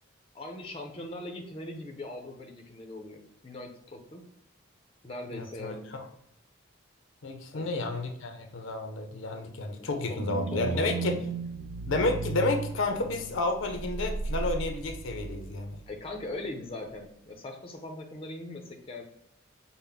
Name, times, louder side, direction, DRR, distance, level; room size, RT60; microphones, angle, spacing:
voice 1, 0.3-4.2 5.0-5.9 7.5-7.7 9.8-11.1 15.9-19.0, left 1 dB, 25° left, 2 dB, 0.6 m, -41 dB
voice 2, 5.3-6.0 7.2-11.2 11.8-15.8, left 2 dB, 70° left, 5 dB, 0.5 m, -31 dB
sound 1, 10.2-15.9 16.2-16.3, right 4 dB, 90° right, 0.3 m, -35 dB
5.6 x 2.1 x 3.4 m, 0.75 s
head